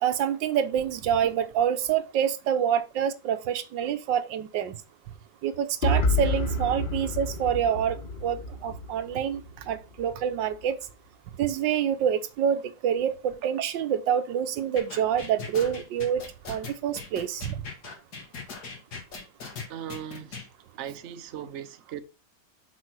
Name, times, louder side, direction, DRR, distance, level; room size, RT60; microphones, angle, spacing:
voice 1, 0.0-4.8 5.4-9.4 9.7-10.8 11.4-16.2 16.5-17.5, right 9 dB, 90° right, 1.5 m, -27 dB
sound 1, 5.8-9.7, left 1 dB, 35° left, 0.9 m, -28 dB
sound 2, 14.8-20.5, left 4 dB, 60° left, 2.4 m, -39 dB
voice 2, 19.7-20.5 20.8-22.0, right 9 dB, 50° right, 0.9 m, -38 dB
6.5 x 4.5 x 6.1 m
omnidirectional pair, 1.9 m